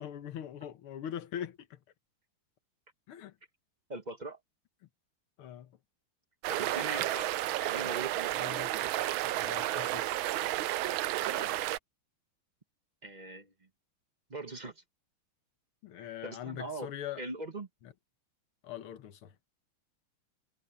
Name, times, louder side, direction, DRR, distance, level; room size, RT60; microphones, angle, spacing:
voice 1, 0.0-1.8 3.1-3.3 5.4-5.8 8.3-10.1 15.8-17.2 18.6-19.3, left 10 dB, 85° left, 2.0 m, -42 dB
voice 2, 3.9-4.4 6.5-7.3 7.6-8.5 11.3-11.7 13.0-13.5 14.3-14.8 16.0-16.9 17.2-17.7, right 2 dB, 30° right, 1.0 m, -41 dB
sound 1, 6.4-11.8, right 15 dB, 75° right, 1.4 m, -32 dB
omnidirectional pair, 2.3 m